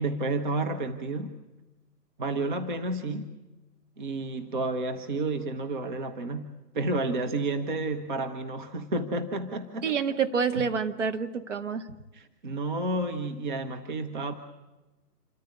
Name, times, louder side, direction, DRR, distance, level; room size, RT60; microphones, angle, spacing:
voice 1, 0.0-1.4 2.2-3.3 4.0-9.9 12.1-14.4, right 2 dB, 30° right, 6 dB, 1.1 m, -31 dB
voice 2, 9.8-11.9, right 6 dB, 45° right, 7 dB, 1.5 m, -28 dB
27.5 x 14.0 x 9.8 m, 1.1 s
figure-of-eight pair, 140°, 49 cm